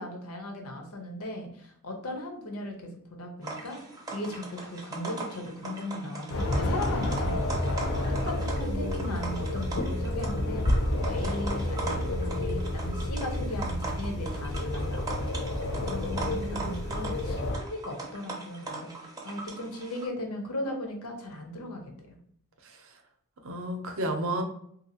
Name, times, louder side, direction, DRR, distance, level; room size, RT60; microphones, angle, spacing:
voice 1, 0.0-3.8 4.1-7.5 8.1-15.2 15.8-22.2, left 1 dB, 80° left, 2 dB, 0.7 m, -37 dB
sound 1, 3.4-20.1, right 3 dB, 15° right, 0.4 m, -40 dB
sound 2, 6.3-17.6, left 1 dB, 50° left, 0.4 m, -30 dB
voice 2, 8.6-9.3 16.2-16.8 22.6-23.0 23.4-24.4, right 1 dB, 65° right, 5 dB, 0.6 m, -34 dB
2.8 x 2.7 x 2.7 m, 0.67 s
head